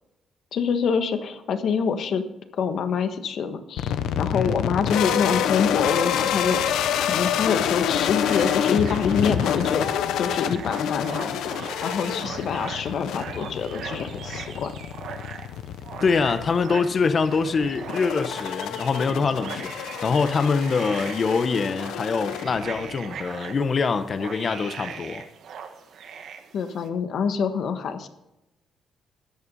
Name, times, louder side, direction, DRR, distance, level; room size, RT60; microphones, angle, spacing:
voice 1, 0.5-2.2 2.6-6.6 7.0-9.9 10.1-14.7 26.5-28.1, left 6 dB, 65° left, 1.4 m, -26 dB
sound 1, 3.8-23.0, left 9 dB, 85° left, 0.7 m, -28 dB
sound 2, 8.2-26.9, right 7 dB, 70° right, 1.6 m, -40 dB
voice 2, 16.0-25.2, left 5 dB, 45° left, 1.1 m, -24 dB
13.0 x 9.0 x 5.5 m
cardioid pair, 90°, 0 cm